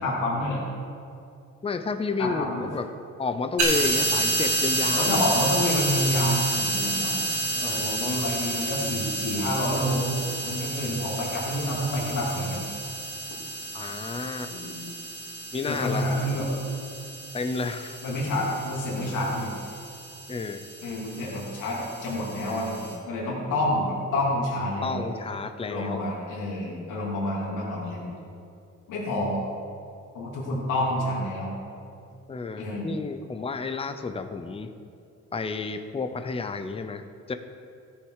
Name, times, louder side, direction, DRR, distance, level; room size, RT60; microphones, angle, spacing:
voice 1, 0.0-0.6 2.2-2.7 4.9-7.2 7.5-12.6 14.5-14.8 15.6-16.5 18.0-19.5 20.8-25.1 25.6-28.1 28.9-29.4 30.1-31.5 32.6-33.0, left 1 dB, 90° left, -4 dB, 2.9 m, -28 dB
voice 2, 1.6-2.9 3.2-5.2 7.6-8.3 13.7-14.5 15.5-16.1 17.3-18.0 20.3-20.6 24.8-26.1 32.3-34.7 35.3-37.3, left 4 dB, 20° left, 9 dB, 0.7 m, -31 dB
sound 1, 3.6-22.9, right 2 dB, 65° right, 2.3 m, -30 dB
15.0 x 7.0 x 4.9 m, 2.5 s
cardioid pair, 90°, 30 cm